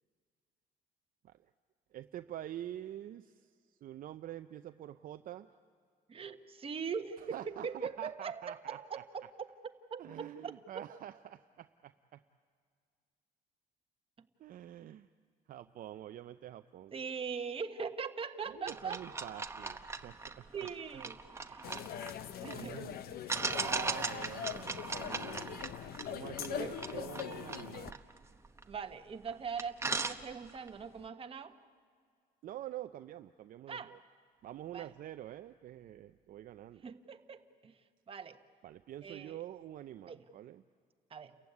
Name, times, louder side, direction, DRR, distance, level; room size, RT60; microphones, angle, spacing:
voice 1, 1.9-5.5 7.2-9.3 10.0-12.2 14.4-15.1 15.5-16.9 18.4-21.1 21.4-21.8 22.5-23.1 23.4-25.7 26.1-28.0 32.4-34.0 34.4-36.8 38.6-40.6, right 12 dB, 55° right, 9 dB, 0.6 m, -47 dB
voice 2, 6.1-9.3 9.9-10.8 14.2-14.3 16.9-19.0 20.5-21.7 22.4-22.8 26.5-26.7 28.7-31.6 33.7-33.9 34.7-34.9 36.8-37.7 38.1-38.4 39.0-39.4 40.1-40.2 41.1-41.3, right 6 dB, 35° right, 7 dB, 1.3 m, -41 dB
sound 1, 18.6-22.6 23.3-28.9 29.3-29.4 29.6-30.7, right 3 dB, 15° right, 1.0 m, -39 dB
sound 2, 21.6-27.9, left 10 dB, 65° left, 0.9 m, -42 dB
29.0 x 15.0 x 9.6 m, 2.1 s
cardioid pair, 110°, 17 cm